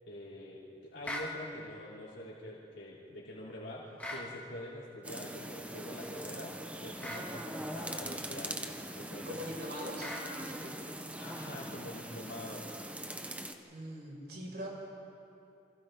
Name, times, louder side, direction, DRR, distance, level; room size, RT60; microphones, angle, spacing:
voice 1, 0.1-8.6 8.9-9.4 11.2-12.7, left 1 dB, 85° left, -7 dB, 3.7 m, -45 dB
sound 1, 1.0-1.3 4.0-4.3 7.0-7.3 10.0-10.3, equal, 10° left, 2.6 m, -39 dB
sound 2, 5.0-13.5, right 1 dB, 10° right, 1.0 m, -42 dB
voice 2, 9.3-10.8 13.7-14.7, equal, 65° right, -3 dB, 5.7 m, -42 dB
28.5 x 25.5 x 3.9 m, 2.9 s
head